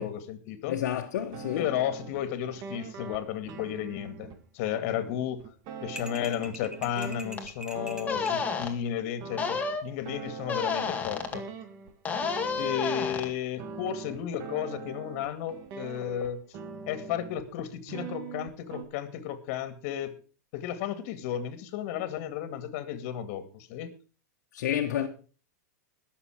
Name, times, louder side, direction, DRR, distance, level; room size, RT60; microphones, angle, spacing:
voice 1, 0.0-0.8 1.5-5.4 5.8-11.5 12.6-16.4 16.9-20.1 20.5-23.9, left 10 dB, 55° left, 2.2 m, -33 dB
voice 2, 0.7-1.7 24.5-25.1, left 10 dB, 70° left, 1.4 m, -29 dB
sound 1, 1.2-8.8 9.2-11.9 12.2-13.1 13.6-17.5 17.9-18.8, right 5 dB, 45° right, 2.0 m, -43 dB
sound 2, 6.0-8.4, right 1 dB, 5° right, 1.5 m, -43 dB
sound 3, 7.4-7.5 8.0-8.7 9.4-9.8 10.5-11.4 12.0-13.3, left 5 dB, 15° left, 1.9 m, -30 dB
21.0 x 7.0 x 4.9 m
supercardioid pair, 140°, 9 cm